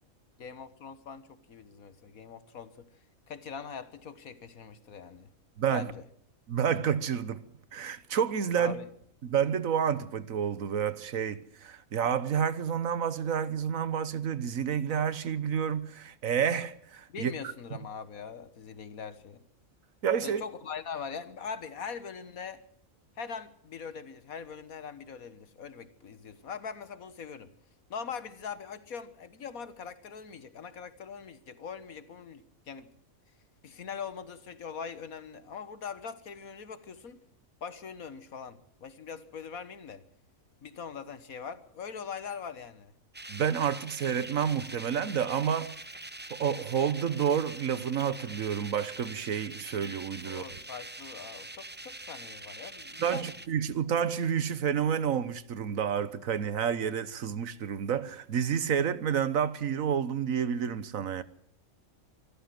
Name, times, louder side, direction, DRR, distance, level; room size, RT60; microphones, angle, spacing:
voice 1, 0.4-2.9 3.3-5.3 5.7-6.0 8.5-8.9 17.1-19.4 20.2-22.6 23.2-27.5 27.9-32.9 33.6-37.2 37.6-40.0 40.6-42.9 50.2-53.3, left 6 dB, 80° left, 1.9 m, -42 dB
voice 2, 5.6-5.9 6.5-8.8 9.2-17.3 20.0-20.4 43.3-45.7 46.3-50.4 53.0-61.2, right 8 dB, 75° right, 1.5 m, -29 dB
sound 1, 43.1-53.5, right 2 dB, 10° right, 0.5 m, -44 dB
24.5 x 14.0 x 7.8 m
omnidirectional pair, 1.5 m